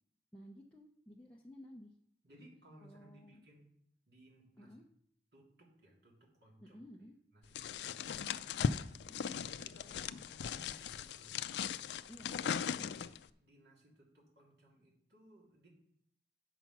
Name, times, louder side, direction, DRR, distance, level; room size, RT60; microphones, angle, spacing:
voice 1, 0.3-1.9 2.8-3.4 4.6-4.8 6.6-7.2 9.1-9.4 12.1-13.0, equal, 5° left, -2 dB, 0.6 m, -55 dB
voice 2, 2.2-3.7 4.1-4.8 5.3-6.8 7.3-9.0 9.6-11.5 12.8-15.7, right 1 dB, 75° right, -3 dB, 2.8 m, -62 dB
sound 1, 7.5-13.3, left 7 dB, 80° left, 0.4 m, -38 dB
8.1 x 5.9 x 5.9 m, 0.69 s
head